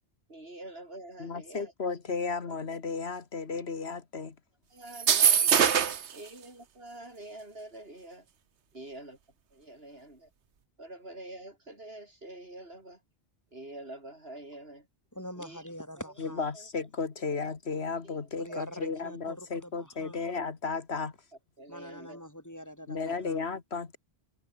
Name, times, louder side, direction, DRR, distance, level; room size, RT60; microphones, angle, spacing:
voice 1, 0.3-1.7 2.5-2.6 4.7-5.7 6.1-8.2 8.7-9.2 9.5-10.3 10.8-13.0 13.5-14.9 15.4-15.6 16.5-16.7 18.0-18.2 18.5-18.6 21.6-22.2, right 1 dB, 65° right, 6.0 m, -46 dB
voice 2, 1.2-4.4 16.2-21.2 22.9-24.0, left 4 dB, 70° left, 1.9 m, -34 dB
sound 1, 4.9-6.1, right 8 dB, 90° right, 1.4 m, -22 dB
voice 3, 15.1-16.5 18.4-20.2 21.7-23.4, equal, 15° left, 4.5 m, -44 dB
omnidirectional pair, 1.1 m